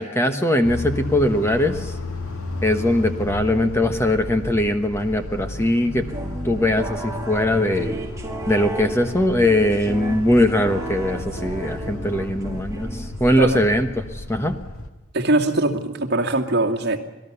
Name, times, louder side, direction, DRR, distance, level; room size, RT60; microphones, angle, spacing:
voice 1, 0.0-1.9 2.6-6.0 6.4-7.9 8.5-14.6, left 1 dB, 10° left, 7 dB, 1.2 m, -21 dB
sound 1, 0.6-14.9, left 1 dB, 80° left, 2.1 m, -33 dB
sound 2, 6.1-13.5, right 1 dB, 15° right, 1.9 m, -34 dB
voice 2, 15.1-17.1, right 2 dB, 50° right, 2 dB, 2.4 m, -22 dB
27.0 x 18.5 x 6.9 m, 1.1 s
head